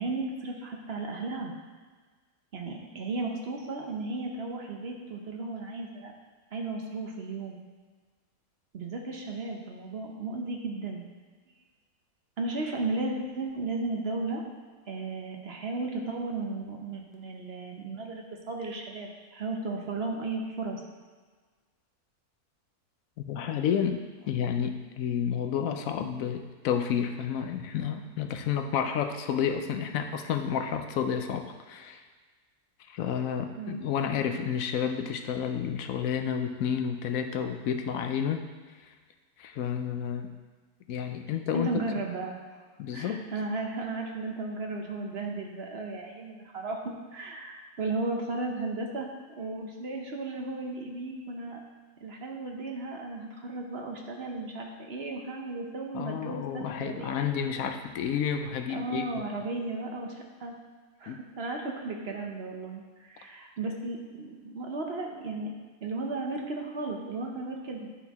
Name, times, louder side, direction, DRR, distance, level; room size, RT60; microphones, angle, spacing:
voice 1, 0.0-1.5 2.5-6.1 6.5-7.6 8.7-11.0 12.4-14.4 14.9-20.8 33.6-33.8 41.5-42.6 42.9-51.6 52.0-57.3 58.7-60.5 61.0-65.5 65.8-67.9, right 3 dB, 50° right, 1 dB, 0.9 m, -35 dB
voice 2, 23.2-32.0 32.9-38.4 39.4-40.3 40.9-41.9 42.8-43.2 55.9-59.2 61.1-61.2, left 8 dB, 70° left, 7 dB, 1.0 m, -30 dB
11.0 x 4.5 x 3.5 m, 1.4 s
omnidirectional pair, 1.6 m